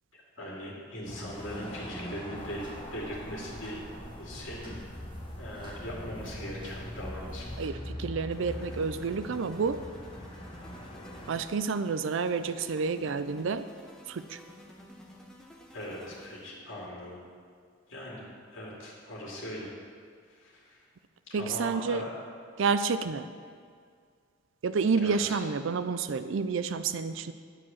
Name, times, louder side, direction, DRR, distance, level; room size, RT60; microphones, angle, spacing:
voice 1, 0.1-3.8 4.2-4.8 5.4-7.5 8.5-8.7 15.7-17.2 17.9-18.2 18.5-19.7 20.3-20.8 21.4-22.1 25.0-25.4, equal, 60° left, -4 dB, 2.5 m, -40 dB
sound 1, 1.1-11.4, equal, 25° left, 1.0 m, -42 dB
sound 2, 2.3-7.7, equal, 20° right, 1.6 m, -50 dB
voice 2, 7.6-9.8 11.3-13.7 14.1-14.4 21.3-22.0 22.6-23.3 24.6-27.3, right 5 dB, 60° right, 12 dB, 0.4 m, -29 dB
sound 3, 8.3-16.6, equal, 5° left, 0.8 m, -52 dB
9.6 x 4.8 x 7.3 m, 2.1 s
head